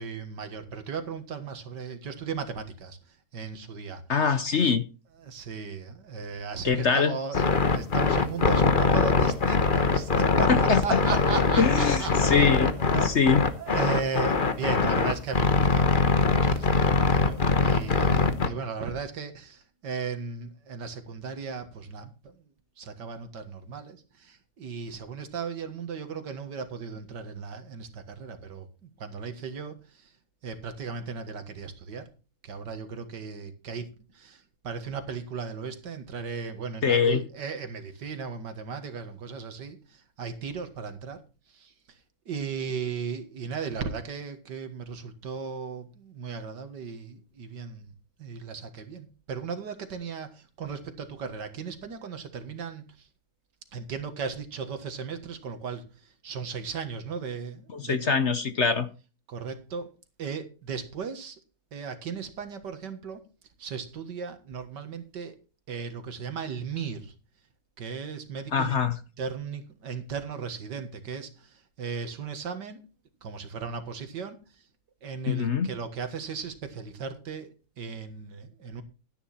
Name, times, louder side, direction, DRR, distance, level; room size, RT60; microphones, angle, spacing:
voice 1, 0.0-3.0 3.3-4.0 5.2-12.5 12.8-13.1 13.5-22.3 22.8-28.7 29.0-29.7 30.4-32.0 32.4-39.8 40.2-41.2 41.5-41.7 42.3-47.9 48.2-52.8 53.7-55.8 56.2-58.0 59.3-59.9 60.2-61.4 61.7-63.2 63.6-65.4 65.7-67.1 67.8-68.7 69.2-71.3 71.8-72.8 73.2-74.4 75.0-78.8, right 5 dB, 80° right, 8 dB, 2.2 m, -36 dB
voice 2, 4.1-4.9 6.6-7.2 10.5-11.0 11.6-13.4 36.8-37.2 57.7-58.9 68.5-69.0 75.3-75.7, left 5 dB, 50° left, 10 dB, 1.0 m, -24 dB
sound 1, 7.3-18.5, left 4 dB, 35° left, 1.1 m, -22 dB
12.0 x 10.0 x 4.2 m, 0.33 s
omnidirectional pair, 1.8 m